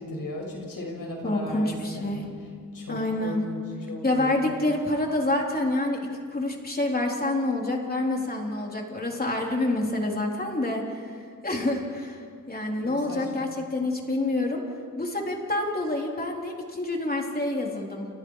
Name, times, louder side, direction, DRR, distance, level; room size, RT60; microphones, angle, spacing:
voice 1, 0.0-2.3 2.7-3.6 3.9-4.5 12.8-13.4, left 1 dB, 85° left, 0 dB, 7.0 m, -36 dB
voice 2, 1.2-2.3 2.9-3.4 4.0-11.2 11.4-14.6 15.0-18.1, left 2 dB, 30° left, 0 dB, 3.9 m, -27 dB
29.5 x 29.5 x 4.9 m, 2.1 s
wide cardioid pair, 135°, 33 cm